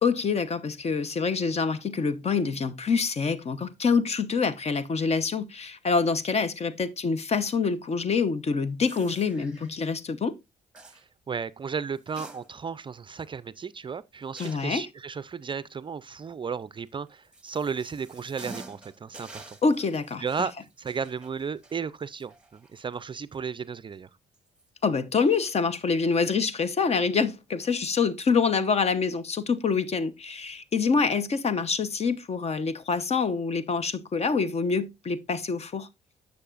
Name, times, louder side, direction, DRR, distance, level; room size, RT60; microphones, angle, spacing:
voice 1, 0.0-10.4 14.4-14.9 19.6-20.5 24.8-35.9, left 5 dB, 40° left, 0.9 m, -26 dB
sound 1, 8.9-9.8 10.7-11.0 11.9-12.8 13.2-13.3 14.4-14.8 16.9-23.0 23.3-23.4 24.3-24.6, right 2 dB, 5° right, 1.7 m, -48 dB
voice 2, 10.9-19.6 20.2-20.5 20.8-24.1, right 6 dB, 30° right, 0.4 m, -34 dB
9.7 x 6.7 x 2.5 m
supercardioid pair, 70°, 16 cm